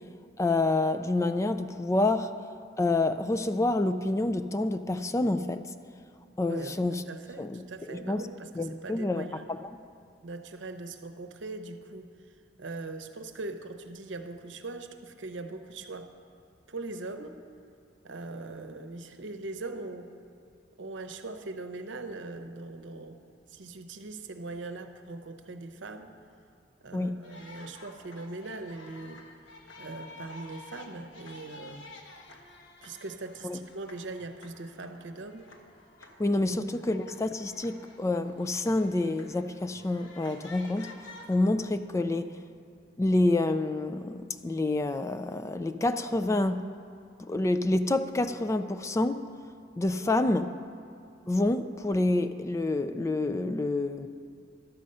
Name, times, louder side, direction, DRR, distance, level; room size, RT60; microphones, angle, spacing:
voice 1, 0.4-2.3 2.8-5.6 6.4-7.0 7.4-8.3 8.6-9.8 26.9-27.2 33.4-33.6 36.2-40.9 41.3-42.3 43.0-46.7 47.2-49.2 49.8-50.5 51.3-54.1, left 2 dB, 15° left, 10 dB, 0.3 m, -28 dB
voice 2, 6.5-9.4 10.2-12.1 12.6-16.1 16.7-17.4 18.0-20.1 20.8-23.2 23.5-26.1 26.8-29.2 29.8-31.9 32.8-35.5 36.4-36.8, right 3 dB, 80° right, 8 dB, 0.8 m, -41 dB
sound 1, 27.2-41.4, left 2 dB, 80° left, 1.2 m, -51 dB
12.0 x 7.7 x 5.4 m, 2.6 s
head